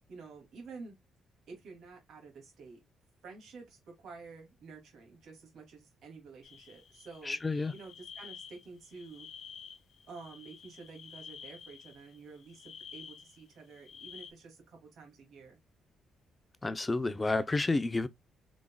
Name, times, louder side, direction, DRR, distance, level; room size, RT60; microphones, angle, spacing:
voice 1, 0.1-1.0 1.5-2.8 3.2-7.4 7.7-9.3 10.1-15.6, right 4 dB, 70° right, 2.6 m, -50 dB
sound 1, 6.4-14.3, left 7 dB, 70° left, 1.0 m, -51 dB
voice 2, 7.2-7.7 16.6-18.1, left 3 dB, 20° left, 0.6 m, -30 dB
5.0 x 3.7 x 2.3 m
cardioid pair, 90°, 0 cm